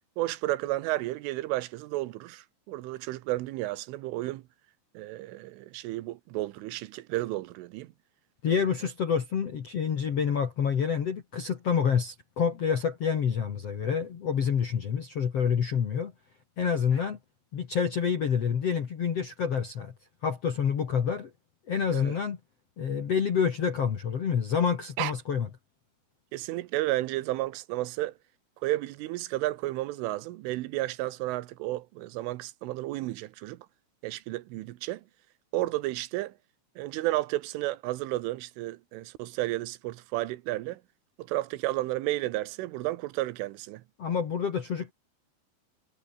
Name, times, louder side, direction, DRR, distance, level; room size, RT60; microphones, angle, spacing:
voice 1, 0.2-4.4 5.0-7.9 21.9-22.2 25.0-25.1 26.3-28.1 28.6-33.6 34.0-35.0 35.5-36.3 36.8-40.8 41.2-43.8, right 17 dB, 85° right, 3.5 m, -32 dB
voice 2, 8.4-16.1 16.6-17.2 17.5-19.9 20.2-21.3 21.7-22.4 22.8-25.5 44.0-44.9, left 7 dB, 55° left, 1.7 m, -28 dB
omnidirectional pair, 5.6 m